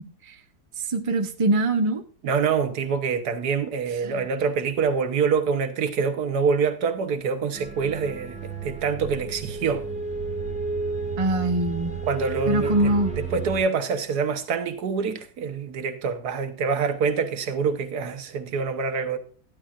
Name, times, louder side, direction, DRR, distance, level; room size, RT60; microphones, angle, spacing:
voice 1, 0.9-2.0 4.0-4.2 11.2-11.9 12.5-13.1, right 2 dB, 25° right, 0.8 m, -23 dB
voice 2, 2.2-9.9 12.1-19.2, right 5 dB, 75° right, 1.6 m, -26 dB
sound 1, 7.5-13.6, right 4 dB, 5° right, 1.7 m, -31 dB
12.0 x 11.0 x 2.5 m
omnidirectional pair, 1.7 m